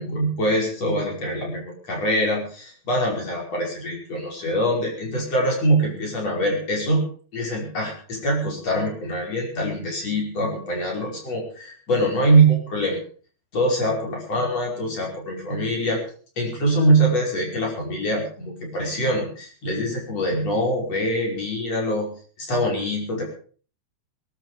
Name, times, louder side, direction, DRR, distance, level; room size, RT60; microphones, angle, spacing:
voice 1, 0.0-7.0 7.3-13.0 13.5-16.0 16.4-22.1 22.4-23.2, right 1 dB, 40° left, 0 dB, 6.2 m, -23 dB
20.5 x 12.5 x 5.1 m, 0.42 s
omnidirectional pair, 4.7 m